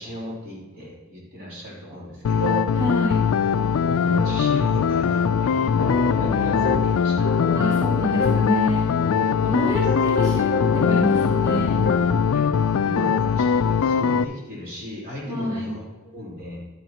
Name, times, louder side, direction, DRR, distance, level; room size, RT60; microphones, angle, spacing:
voice 1, 0.0-2.7 3.8-7.3 9.5-9.9 12.3-12.4 12.8-16.6, equal, 40° right, -6 dB, 3.2 m, -34 dB
sound 1, 2.2-14.2, left 6 dB, 70° left, 0.3 m, -21 dB
voice 2, 2.8-3.2 7.5-8.9 9.4-11.9 15.3-15.7, left 1 dB, 20° right, -8 dB, 2.9 m, -27 dB
Piano, 5.8-6.8 7.2-8.4 9.0-12.3, left 4 dB, 50° left, 0.7 m, -27 dB
11.5 x 10.5 x 2.9 m, 1.3 s
head